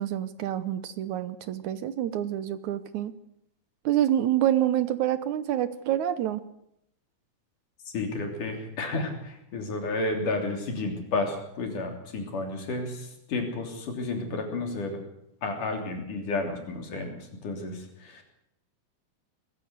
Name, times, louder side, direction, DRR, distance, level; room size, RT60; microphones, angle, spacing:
voice 1, 0.0-3.1 3.9-6.4, right 11 dB, 70° right, 13 dB, 2.0 m, -27 dB
voice 2, 7.9-15.0 15.4-18.2, left 2 dB, 60° left, 3 dB, 4.8 m, -32 dB
21.5 x 15.5 x 8.1 m, 0.76 s
omnidirectional pair, 4.1 m